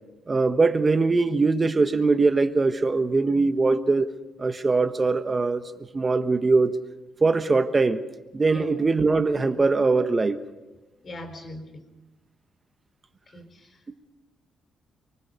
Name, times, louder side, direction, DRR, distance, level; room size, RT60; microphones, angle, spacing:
voice 1, 0.3-4.1 4.4-5.6 5.9-6.8 7.2-8.0 8.3-10.4, right 3 dB, 25° right, 1.3 m, -21 dB
voice 2, 11.0-11.8 13.3-13.8, left 1 dB, 40° left, 4.5 m, -40 dB
24.5 x 23.5 x 5.4 m
cardioid pair, 90°, 0 cm